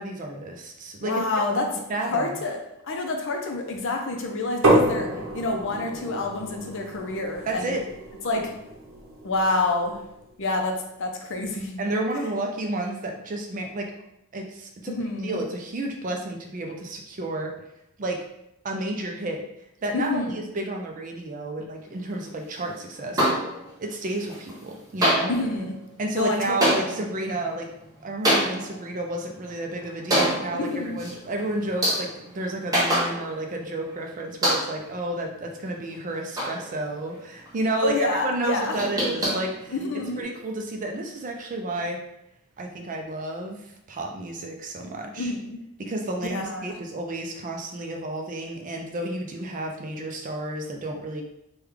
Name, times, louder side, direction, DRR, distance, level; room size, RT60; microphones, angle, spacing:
voice 1, 0.0-1.2 1.9-2.4 7.5-7.8 11.8-13.9 14.3-14.9 15.2-17.5 18.0-18.2 18.6-19.4 19.8-23.4 23.8-25.3 26.0-27.7 28.0-39.7 40.2-42.0 42.6-45.3 45.8-51.2, right 2 dB, 35° right, 2 dB, 0.4 m, -31 dB
voice 2, 1.0-1.8 2.1-7.8 8.2-8.6 9.2-10.0 10.4-11.8 14.9-15.4 19.9-20.4 25.3-25.8 26.1-27.2 30.5-31.0 37.8-38.8 39.7-40.3 45.2-45.6 46.3-46.7, left 2 dB, 60° left, 2 dB, 0.5 m, -28 dB
sound 1, 4.6-10.3, right 1 dB, 60° right, 0.8 m, -28 dB
sound 2, 23.2-23.9 24.2-24.7 25.0-33.6 33.9-34.0 34.4-35.0 35.4-37.2 37.5-37.6 37.8-37.9 38.3-40.2, equal, 15° right, 0.8 m, -27 dB
3.2 x 2.3 x 3.4 m, 0.83 s
head